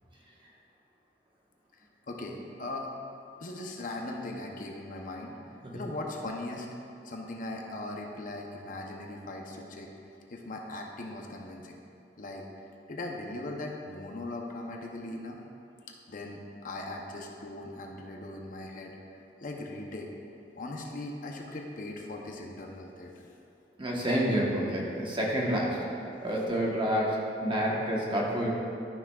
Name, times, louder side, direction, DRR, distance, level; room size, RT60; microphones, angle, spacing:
voice 1, 2.1-2.9 3.4-6.7 7.0-9.9 10.3-11.8 12.2-12.5 12.9-15.4 16.1-19.0 19.4-20.1 20.5-23.3, left 2 dB, 50° left, 1 dB, 0.7 m, -39 dB
voice 2, 23.8-25.8 26.2-28.5, equal, 30° right, -3 dB, 1.2 m, -28 dB
12.5 x 5.9 x 2.4 m, 2.6 s
head